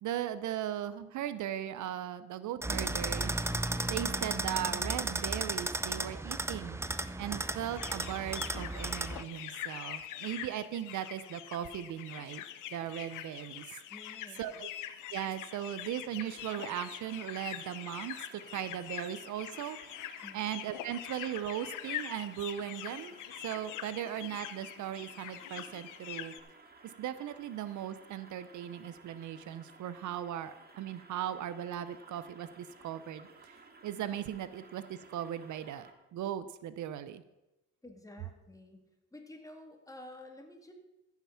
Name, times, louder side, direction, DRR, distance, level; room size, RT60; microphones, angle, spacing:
voice 1, 0.0-3.3 3.9-6.8 7.2-12.4 12.7-13.6 14.4-14.7 15.1-19.8 20.3-23.1 23.4-26.3 27.0-37.2, right 11 dB, 75° right, 14 dB, 0.7 m, -38 dB
sound 1, 2.6-9.2, right 2 dB, 10° right, 0.5 m, -34 dB
sound 2, 7.7-26.4, left 12 dB, 90° left, 0.7 m, -44 dB
voice 2, 13.9-14.5 20.2-20.4 37.8-38.9 39.1-40.7, left 1 dB, 10° left, 3 dB, 2.0 m, -50 dB
sound 3, 16.2-35.9, right 3 dB, 30° right, 1.7 m, -57 dB
14.5 x 5.9 x 5.7 m, 0.97 s
cardioid pair, 90°, 30 cm